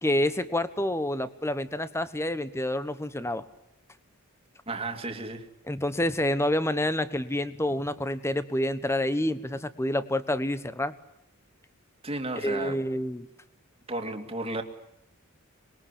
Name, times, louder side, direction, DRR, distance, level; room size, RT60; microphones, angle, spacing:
voice 1, 0.0-3.5 5.7-10.9 12.4-13.3, left 1 dB, 10° left, 13 dB, 1.2 m, -28 dB
voice 2, 4.7-5.5 12.0-12.8 13.9-14.6, right 2 dB, 25° right, 4 dB, 2.5 m, -33 dB
26.0 x 22.0 x 8.4 m, 0.81 s
head